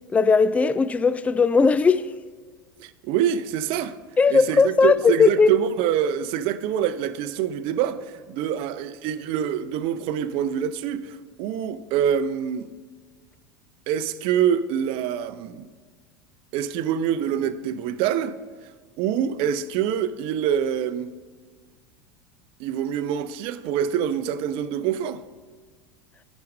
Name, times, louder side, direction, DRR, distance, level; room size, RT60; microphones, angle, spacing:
voice 1, 0.1-2.1 4.2-5.5, left 4 dB, 10° left, 0.3 m, -18 dB
voice 2, 2.8-4.0 4.3-12.7 13.9-15.7 16.5-18.4 19.0-21.1 22.6-25.2, right 9 dB, 55° right, 0.6 m, -25 dB
9.3 x 6.1 x 5.3 m
hypercardioid pair, 90°, 11 cm